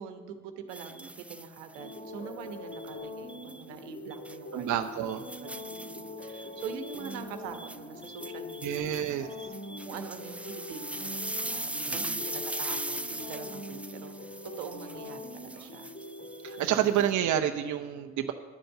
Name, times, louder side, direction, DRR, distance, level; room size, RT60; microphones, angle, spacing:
voice 1, 0.0-5.0 5.4-9.3 9.8-15.9 16.6-16.9, right 7 dB, 75° right, 7 dB, 1.3 m, -44 dB
sound 1, 0.7-2.0 2.7-3.6 4.1-4.4 4.8-17.0, right 1 dB, 5° right, 0.4 m, -40 dB
sound 2, 1.8-17.3, left 2 dB, 30° left, 2.2 m, -43 dB
voice 2, 4.5-5.3 8.6-9.3 11.8-12.2 16.4-18.3, right 10 dB, 50° right, 6 dB, 0.9 m, -29 dB
11.0 x 7.8 x 7.7 m, 1.4 s
hypercardioid pair, 45°, 38 cm